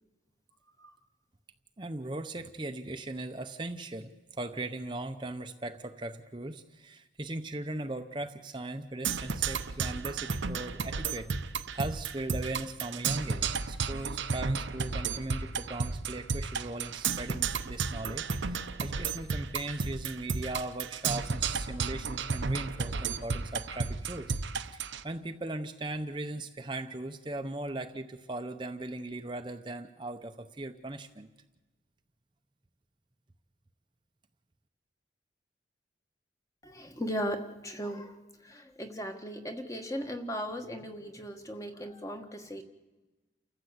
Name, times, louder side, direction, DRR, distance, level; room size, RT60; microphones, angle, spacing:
voice 1, 1.8-11.3 11.7-24.3 24.7-31.3, right 2 dB, 25° right, 6 dB, 0.7 m, -39 dB
Percussion, 9.0-25.0, right 5 dB, 80° right, 0.8 m, -33 dB
voice 2, 36.6-42.6, equal, 15° left, 6 dB, 1.4 m, -37 dB
29.0 x 14.5 x 8.1 m, 1.2 s
head